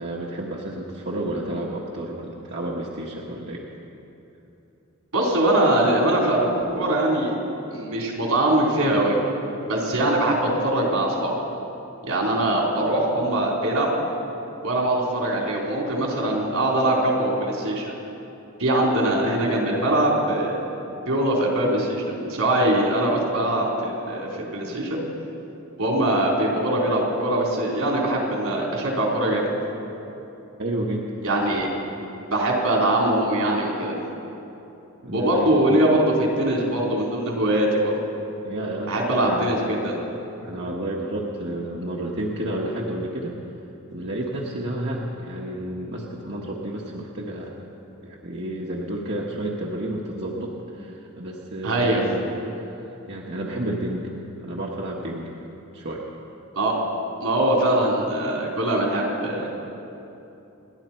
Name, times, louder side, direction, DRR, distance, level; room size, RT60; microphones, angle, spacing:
voice 1, 0.0-3.7 11.5-11.6 24.6-24.8 30.6-31.1 34.1-34.2 35.0-35.8 38.4-38.9 39.2-39.6 40.4-43.4 43.9-47.5 48.0-52.7 53.1-54.1 54.4-55.3 55.7-56.1, right 1 dB, 50° right, -3 dB, 1.4 m, -31 dB
voice 2, 5.1-7.4 7.7-9.2 9.7-11.3 12.1-13.9 14.6-17.9 18.6-20.6 21.1-25.0 25.8-29.5 31.2-31.7 32.3-34.0 35.1-37.9 38.9-39.9 51.6-52.0 56.5-56.7 57.2-59.5, right 1 dB, 85° right, -2 dB, 4.0 m, -22 dB
29.0 x 11.0 x 4.5 m, 2.9 s
head